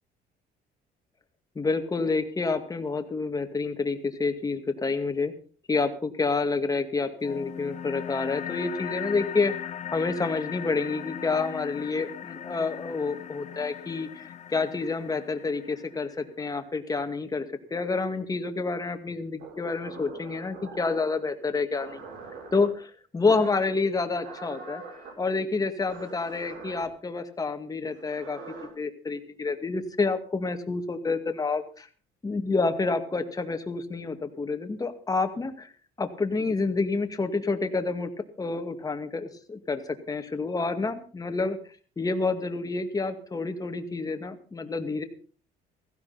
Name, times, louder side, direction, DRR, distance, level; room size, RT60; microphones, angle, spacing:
voice 1, 1.6-5.3 5.7-17.5 17.7-22.0 22.5-24.8 25.2-28.4 28.8-31.9 32.2-35.7 36.0-38.1 38.4-41.6 42.0-45.0, left 4 dB, 20° left, 7 dB, 2.2 m, -28 dB
sound 1, 7.2-16.2, left 9 dB, 45° left, 0.9 m, -39 dB
sound 2, 19.4-21.1 21.8-22.7 23.3-23.7 24.2-25.1 25.9-26.8 27.9-28.7, right 4 dB, 80° right, 7.1 m, -43 dB
16.0 x 15.5 x 4.3 m, 0.41 s
cardioid pair, 110°, 17 cm